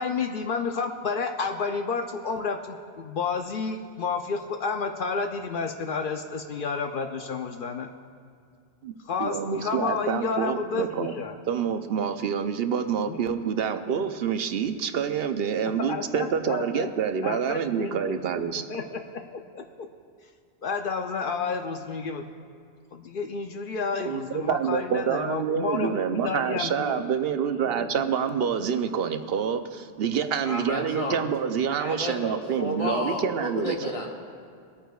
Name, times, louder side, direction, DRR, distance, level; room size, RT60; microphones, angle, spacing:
voice 1, 0.0-7.9 9.0-11.4 13.1-13.2 15.9-16.9 17.2-18.0 18.7-19.9 20.6-22.2 22.9-27.0 27.6-28.1, left 5 dB, 60° left, 5 dB, 0.7 m, -31 dB
voice 2, 9.2-11.1 11.5-18.6 24.0-33.9, right 7 dB, 70° right, 8 dB, 0.8 m, -27 dB
voice 3, 30.5-31.2 31.8-34.1, left 1 dB, 35° left, -1 dB, 1.3 m, -31 dB
23.0 x 9.0 x 2.3 m, 2.2 s
omnidirectional pair, 1.0 m